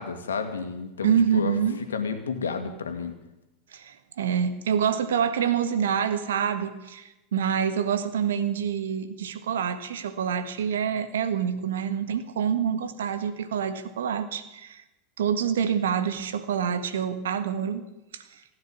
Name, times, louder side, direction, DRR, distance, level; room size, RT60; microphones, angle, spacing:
voice 1, 0.0-1.5 1.9-3.2, left 5 dB, 85° left, 8 dB, 1.9 m, -31 dB
voice 2, 1.0-1.8 3.7-14.8 15.2-17.9 18.1-18.2, right 8 dB, 75° right, 11 dB, 1.5 m, -26 dB
16.5 x 9.8 x 8.7 m, 0.96 s
hypercardioid pair, 90°, 0 cm